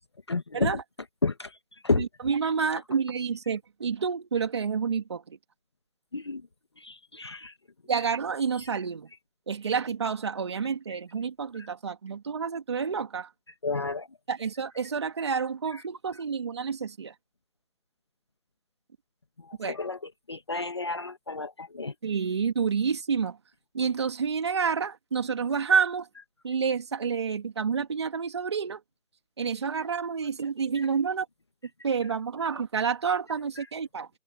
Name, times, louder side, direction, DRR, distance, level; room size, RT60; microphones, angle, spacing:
voice 1, 0.3-0.7 1.2-1.5 1.8-2.0 6.1-6.4 6.8-7.5 13.6-14.1 19.7-20.0 20.3-21.9, left 3 dB, 20° left, 1.5 m, -30 dB
voice 2, 1.9-5.4 7.9-9.1 9.5-13.3 14.3-17.1 19.6-19.8 22.0-23.4 23.7-26.1 26.4-28.8 29.4-31.3 31.8-34.1, right 6 dB, 20° right, 2.5 m, -29 dB
open air
figure-of-eight pair, 170°, 40 cm